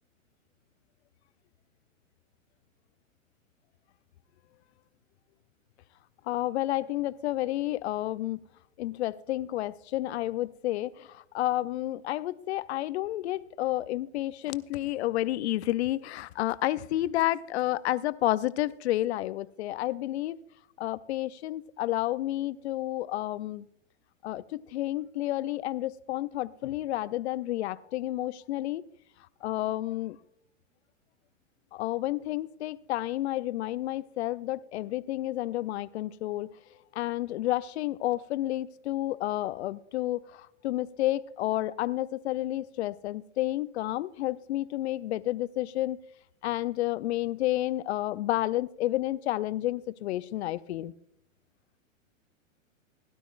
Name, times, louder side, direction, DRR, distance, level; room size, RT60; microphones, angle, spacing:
voice 1, 6.3-8.5 8.8-20.4 20.8-23.6 24.2-28.8 29.4-30.2 31.7-36.5 36.9-46.0 46.4-50.9, left 15 dB, 55° left, 0.6 m, -30 dB
16.5 x 12.0 x 2.5 m
hypercardioid pair, 115°, 40 cm